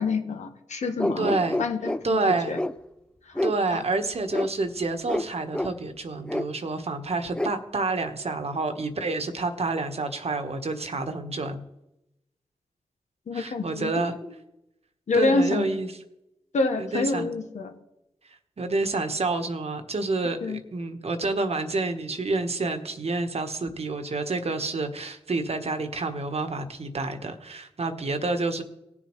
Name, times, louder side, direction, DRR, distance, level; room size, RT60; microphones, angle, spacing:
voice 1, 0.0-1.3 1.6-2.6 3.7-3.8 13.3-13.9 15.1-15.7 16.5-17.7 20.4-20.6, left 3 dB, 75° left, 5 dB, 1.4 m, -27 dB
sound 1, 1.0-2.0 2.5-2.7 3.3-3.6 4.3-4.5 5.1-5.3 5.5-5.7 6.3-6.4 7.3-7.5, left 1 dB, 10° left, 0.5 m, -27 dB
voice 2, 1.2-1.6 2.0-2.5 3.4-11.6 13.3-14.1 15.1-15.9 16.8-17.3 18.6-28.6, right 3 dB, 60° right, 7 dB, 1.3 m, -28 dB
18.0 x 7.3 x 3.2 m, 0.88 s
cardioid pair, 45°, 12 cm